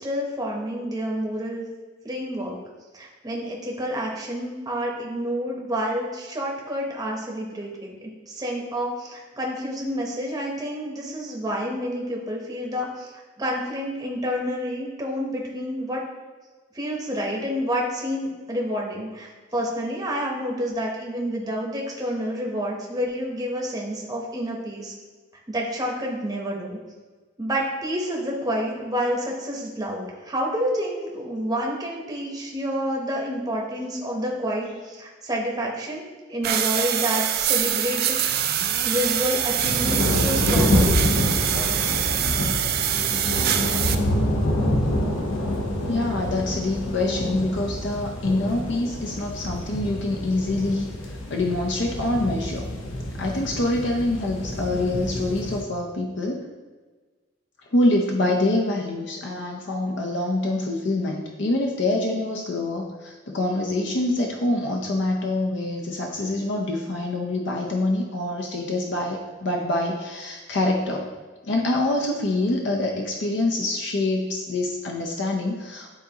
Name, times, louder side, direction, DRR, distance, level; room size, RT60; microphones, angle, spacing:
voice 1, 0.0-1.6 2.0-2.6 2.9-13.1 13.4-16.0 16.7-24.9 25.5-26.8 27.4-36.0 36.3-38.1 38.8-41.0, equal, 20° right, -2 dB, 0.8 m, -29 dB
sound 1, 36.4-44.0, right 10 dB, 50° right, 0.4 m, -24 dB
sound 2, 38.2-55.6, left 1 dB, 90° left, 1.0 m, -27 dB
voice 2, 45.9-50.9 51.3-52.7 53.2-56.4 57.7-71.1 71.4-75.9, left 2 dB, 60° left, 0 dB, 0.6 m, -25 dB
9.7 x 4.0 x 2.8 m, 1.3 s
head